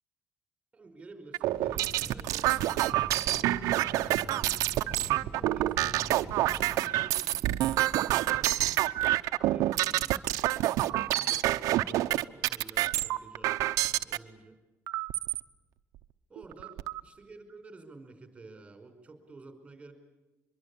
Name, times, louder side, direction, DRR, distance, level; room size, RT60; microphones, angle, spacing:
voice 1, 0.7-5.7 6.4-9.0 9.5-14.6 16.3-19.9, right 3 dB, 20° right, 6 dB, 5.1 m, -51 dB
sound 1, 1.3-14.2 14.9-15.4 16.0-16.1 16.4-17.0, right 15 dB, 80° right, 0.8 m, -28 dB
sound 2, 1.5-6.8, equal, 15° left, 2.4 m, -45 dB
24.0 x 23.0 x 8.6 m, 1.1 s
cardioid pair, 135°, 6 cm